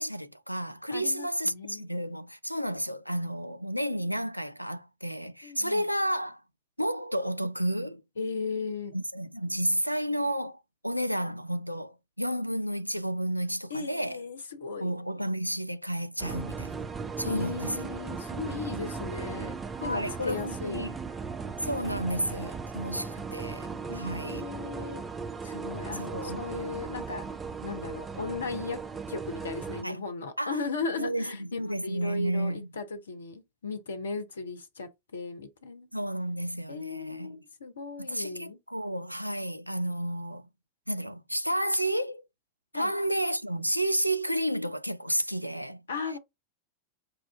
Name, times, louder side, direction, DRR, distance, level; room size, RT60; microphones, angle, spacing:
voice 1, 0.0-6.4 6.8-8.0 8.9-14.2 14.8-16.9 17.2-17.7 19.8-21.0 21.6-23.7 23.9-24.4 25.9-26.5 29.8-30.0 30.4-30.6 31.0-32.7 35.9-37.4 38.0-40.5 40.9-42.2 42.7-45.8, equal, 90° right, 0.4 m, -31 dB
voice 2, 0.9-1.9 5.4-5.8 8.2-8.9 13.7-14.9 17.2-20.9 23.9-25.0 25.4-27.2 27.6-28.8 29.1-35.9 36.7-38.6 42.7-42.9 45.9-46.2, left 4 dB, 70° left, 0.7 m, -36 dB
sound 1, 16.2-29.8, right 5 dB, 15° right, 0.4 m, -37 dB
5.0 x 2.4 x 3.5 m
figure-of-eight pair, 90°, 0 cm